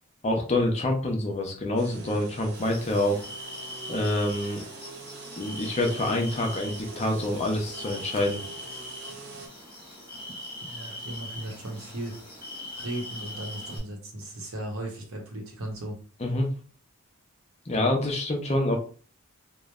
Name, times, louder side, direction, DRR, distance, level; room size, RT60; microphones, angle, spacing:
voice 1, 0.2-3.2 3.9-4.6 5.4-8.4 16.2-16.5 17.7-18.8, left 1 dB, 30° left, 2 dB, 0.5 m, -26 dB
sound 1, 1.8-9.5, right 3 dB, 50° right, 0.4 m, -44 dB
sound 2, 2.5-13.8, left 1 dB, 5° left, 0.9 m, -41 dB
voice 2, 10.7-12.1 12.7-16.0, right 1 dB, 75° right, 1 dB, 0.8 m, -36 dB
3.0 x 2.0 x 2.3 m, 0.40 s
head